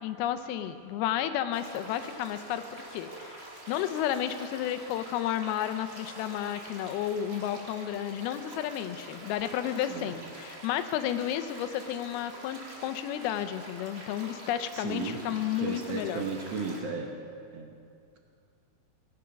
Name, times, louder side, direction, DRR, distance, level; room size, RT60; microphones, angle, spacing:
voice 1, 0.0-16.2, left 11 dB, 85° left, 10 dB, 2.6 m, -32 dB
sound 1, 1.5-16.8, right 1 dB, 30° right, 1.6 m, -46 dB
voice 2, 14.7-15.2 15.6-17.1 17.5-17.8, right 5 dB, 70° right, 3 dB, 1.5 m, -35 dB
19.0 x 9.7 x 5.8 m, 2.3 s
omnidirectional pair, 4.3 m